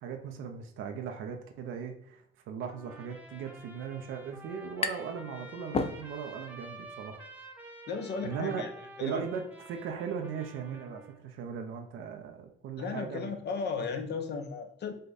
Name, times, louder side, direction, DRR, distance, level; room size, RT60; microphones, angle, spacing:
voice 1, 0.0-7.2 8.2-8.6 9.0-13.3, right 7 dB, 85° right, 4 dB, 0.6 m, -38 dB
Trumpet, 2.6-11.2, right 2 dB, 10° right, 0.8 m, -50 dB
sound 1, 4.0-5.2 5.5-6.5, left 4 dB, 30° left, 0.4 m, -34 dB
voice 2, 7.9-8.7 9.0-9.2 12.8-14.9, left 5 dB, 55° left, 7 dB, 0.8 m, -35 dB
5.1 x 2.2 x 4.0 m, 0.69 s
cardioid pair, 90°, 20 cm